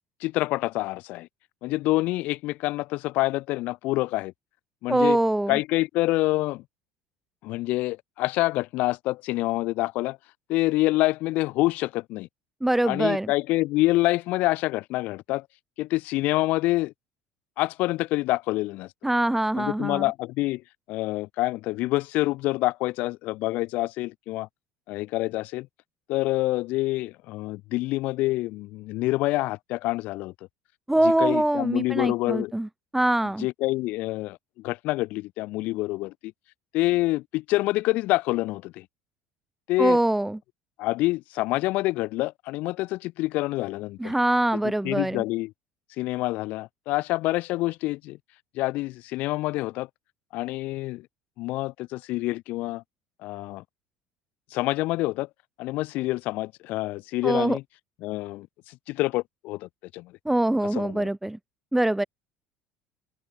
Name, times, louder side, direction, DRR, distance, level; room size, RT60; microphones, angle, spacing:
voice 1, 0.2-1.3 1.6-4.3 4.8-5.2 5.5-6.6 7.4-10.2 10.5-12.3 12.9-15.5 15.8-16.9 17.6-18.9 19.6-20.6 20.9-24.5 24.9-25.7 26.1-30.3 31.0-32.5 33.4-36.3 36.7-38.8 39.7-40.0 40.8-44.1 44.5-45.5 46.0-48.2 48.5-49.9 50.3-51.1 51.4-52.8 53.2-53.6 54.5-55.3 55.6-57.6 58.0-60.1 60.7-61.1, left 19 dB, 60° left, 1.6 m, -27 dB
voice 2, 4.9-5.6 12.6-13.3 19.0-20.0 30.9-33.5 39.8-40.4 44.0-45.2 57.2-57.6 60.3-61.4 61.7-62.0, right 1 dB, 5° right, 2.0 m, -23 dB
open air
hypercardioid pair, 65°, 3 cm